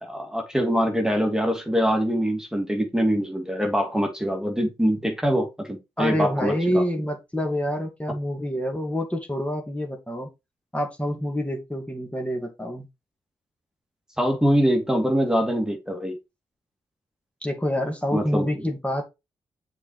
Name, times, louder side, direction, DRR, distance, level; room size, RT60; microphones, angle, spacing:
voice 1, 0.0-6.8 14.2-16.2 18.1-18.6, equal, 5° right, 2.6 m, -24 dB
voice 2, 6.0-10.3 10.7-12.9 17.4-19.1, equal, 10° left, 2.5 m, -27 dB
7.0 x 4.5 x 4.9 m
cardioid pair, 55°, 11 cm